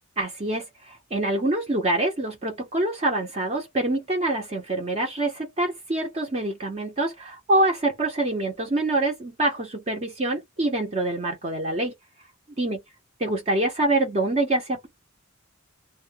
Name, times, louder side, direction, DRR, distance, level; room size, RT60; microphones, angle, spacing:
voice 1, 0.2-11.9 12.6-12.8 13.2-14.9, right 2 dB, 30° right, 0.7 m, -25 dB
2.2 x 2.1 x 2.6 m
head